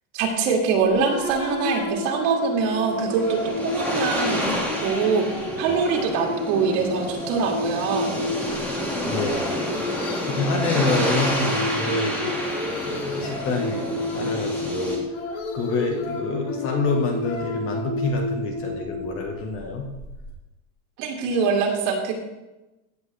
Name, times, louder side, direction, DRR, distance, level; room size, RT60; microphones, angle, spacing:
voice 1, 0.1-5.3 5.6-8.1 21.0-22.1, right 5 dB, 55° right, 1 dB, 2.3 m, -24 dB
sound 1, 0.8-20.3, left 2 dB, 50° left, 2.3 m, -31 dB
sound 2, 2.7-15.0, equal, 5° left, 2.0 m, -29 dB
voice 2, 9.0-9.4 10.3-12.4 12.9-13.9 14.1-15.0 15.5-19.9, left 3 dB, 30° left, 2 dB, 1.4 m, -27 dB
16.5 x 7.7 x 3.4 m, 1.0 s
supercardioid pair, 160°, 45 cm